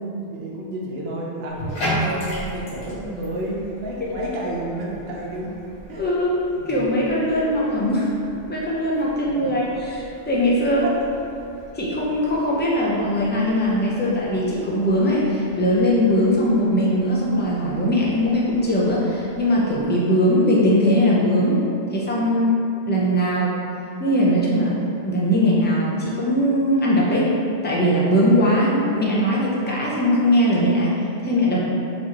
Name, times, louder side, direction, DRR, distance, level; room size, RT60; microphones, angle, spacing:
voice 1, 0.0-5.5 5.9-6.0 6.5-6.9 9.4-9.5 10.8-11.0, right 1 dB, 60° right, -4 dB, 0.9 m, -30 dB
Bathtub (filling or washing), 1.5-19.8, right 1 dB, 90° left, 1.4 m, -37 dB
voice 2, 5.9-8.1 8.5-10.9 11.7-21.6 21.9-22.6 22.9-23.6 24.0-24.7 25.0-27.4 27.6-31.0 31.2-31.6, equal, 15° left, -6 dB, 0.4 m, -20 dB
4.3 x 3.0 x 2.9 m, 2.8 s
omnidirectional pair, 1.2 m